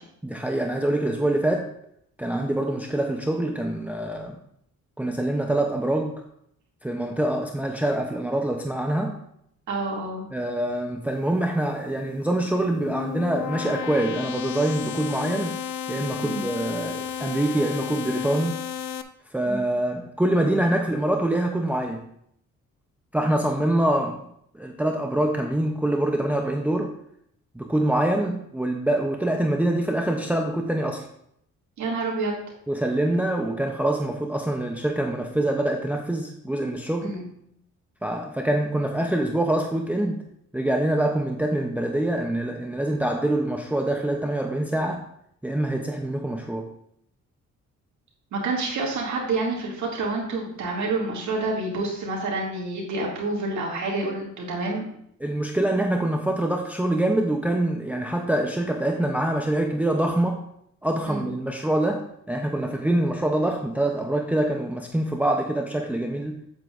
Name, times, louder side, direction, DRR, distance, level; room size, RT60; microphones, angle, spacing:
voice 1, 0.2-1.7 2.2-4.4 5.0-6.1 6.8-9.2 10.3-15.6 15.9-18.6 19.3-22.1 23.1-24.2 24.5-26.9 27.5-31.1 32.7-37.1 38.0-40.2 40.5-45.0 45.4-46.7 55.2-60.4 60.8-66.4, right 1 dB, 5° right, 2 dB, 0.7 m, -25 dB
voice 2, 9.7-10.2 16.2-16.5 19.5-19.7 31.8-32.4 37.0-37.3 48.3-54.8 61.1-61.3, right 3 dB, 75° right, -2 dB, 2.5 m, -28 dB
sound 1, 12.5-19.0, left 9 dB, 80° left, 0.6 m, -32 dB
8.9 x 7.8 x 2.5 m, 0.70 s
cardioid pair, 120°, 29 cm